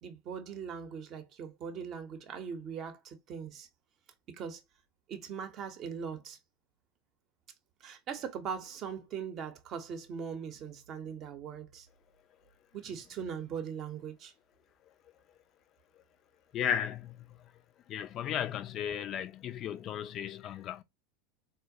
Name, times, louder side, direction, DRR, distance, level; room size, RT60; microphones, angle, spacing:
voice 1, 0.0-3.7 4.3-4.6 5.1-6.4 7.8-11.9 12.7-14.3, right 7 dB, 40° right, 0.7 m, -40 dB
voice 2, 16.5-17.0 17.9-20.8, left 9 dB, 40° left, 0.3 m, -34 dB
3.7 x 2.1 x 2.6 m
figure-of-eight pair, 80°, 0 cm